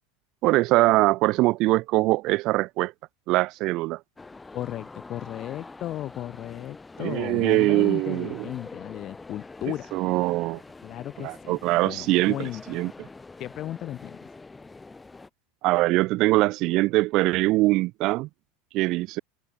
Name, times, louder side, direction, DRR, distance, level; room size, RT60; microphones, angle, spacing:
voice 1, 0.4-2.9 3.3-4.0 7.0-8.4 9.9-10.6 11.2-12.9 15.6-18.3 18.7-19.2, right 20 dB, 55° right, 1.7 m, -22 dB
sound 1, 4.2-15.3, left 3 dB, 15° left, 3.3 m, -45 dB
voice 2, 4.5-9.9 10.8-12.9 13.4-14.2, left 13 dB, 45° left, 1.8 m, -35 dB
hypercardioid pair, 100°, 0 cm